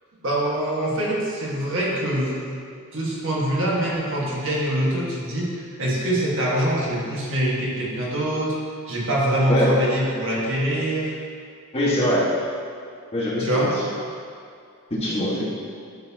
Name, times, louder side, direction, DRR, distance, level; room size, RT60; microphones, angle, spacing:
voice 1, 0.2-2.6 2.9-8.6 8.9-11.1 13.4-13.7, right 1 dB, 60° right, -5 dB, 1.7 m, -24 dB
voice 2, 11.7-12.3 13.1-13.7 14.9-15.5, equal, 25° left, -7 dB, 1.7 m, -22 dB
10.5 x 6.9 x 2.9 m, 2.3 s
head